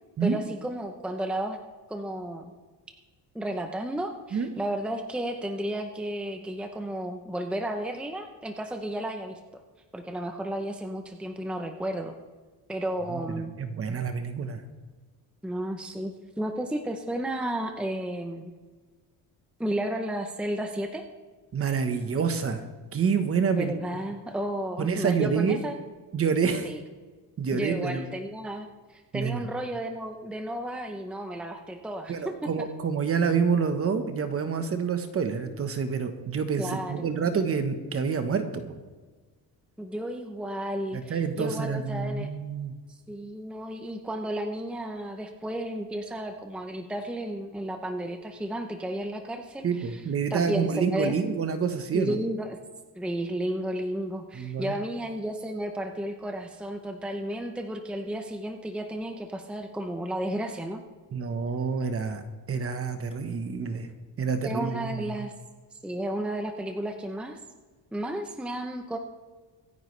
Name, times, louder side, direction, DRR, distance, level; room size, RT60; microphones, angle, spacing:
voice 1, 0.2-1.6 1.9-2.5 3.3-9.4 9.9-12.1 12.7-13.5 15.4-18.5 19.6-21.0 23.5-25.8 26.6-26.8 27.5-32.3 36.6-37.1 39.8-42.3 42.9-50.0 50.3-51.1 51.9-52.6 53.0-60.8 64.4-65.3 65.7-67.4 67.9-69.0, right 1 dB, 5° right, 4 dB, 0.7 m, -33 dB
voice 2, 13.6-14.6 21.5-22.6 22.9-23.8 24.8-25.6 26.1-26.7 27.4-28.1 29.1-29.5 32.1-38.8 40.9-42.7 49.6-52.2 54.3-54.8 61.1-62.2 62.5-63.9 64.2-65.2, right 6 dB, 35° right, 8 dB, 1.2 m, -27 dB
24.5 x 9.5 x 3.3 m, 1.4 s
cardioid pair, 160°, 38 cm